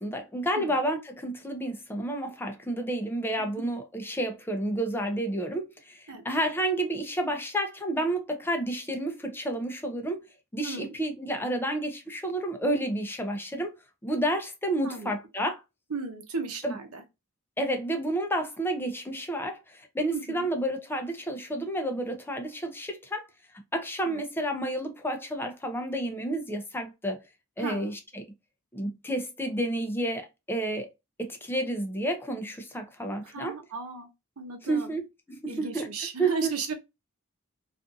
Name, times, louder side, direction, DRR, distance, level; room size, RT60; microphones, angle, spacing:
voice 1, 0.0-10.2 10.5-13.8 14.0-15.6 16.6-16.8 17.6-23.2 23.7-27.2 27.6-28.2 28.7-30.9 31.2-33.6 34.7-35.0 35.3-35.9 36.2-36.5, right 1 dB, 10° left, 0.5 m, -30 dB
voice 2, 10.6-11.0 14.8-15.2 15.9-17.0 20.1-20.5 24.0-24.2 27.6-27.9 33.2-34.1 34.4-35.0 35.5-36.7, right 4 dB, 90° right, 0.7 m, -35 dB
2.5 x 2.5 x 2.5 m
head